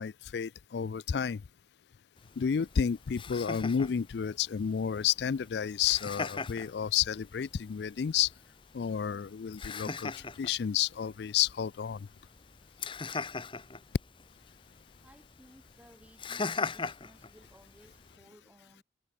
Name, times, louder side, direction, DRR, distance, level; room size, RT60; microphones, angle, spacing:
voice 1, 0.0-1.4 2.4-8.3 8.7-12.1, left 8 dB, 65° left, 0.4 m, -31 dB
Laughter, 2.2-18.2, left 4 dB, 30° left, 1.0 m, -42 dB
voice 2, 15.0-18.8, equal, 5° right, 2.1 m, -59 dB
head